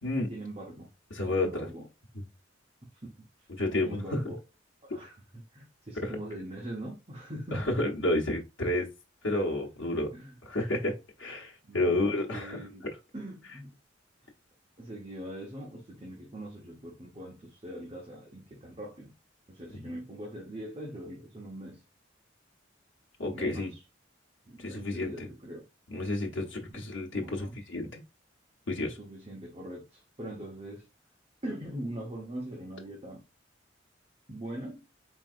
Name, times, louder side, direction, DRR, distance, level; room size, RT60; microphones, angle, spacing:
voice 1, 0.3-0.9 1.3-1.9 3.0-3.5 3.8-4.4 4.8-7.7 9.3-9.5 10.1-10.4 11.6-12.9 13.1-13.7 14.8-19.1 19.5-21.8 23.3-23.8 24.5-25.6 26.7-26.8 27.2-27.5 29.0-30.9 31.4-33.3 34.3-34.8, right 1 dB, 30° right, 1.0 m, -42 dB
voice 2, 1.1-1.7 2.1-2.3 3.6-4.2 6.0-6.1 7.5-8.9 9.2-10.1 10.4-10.9 11.2-12.6 19.8-19.9 23.2-23.7 24.6-25.3 25.9-28.0 28.7-29.0, left 2 dB, 85° left, 1.0 m, -30 dB
4.6 x 3.5 x 2.5 m
head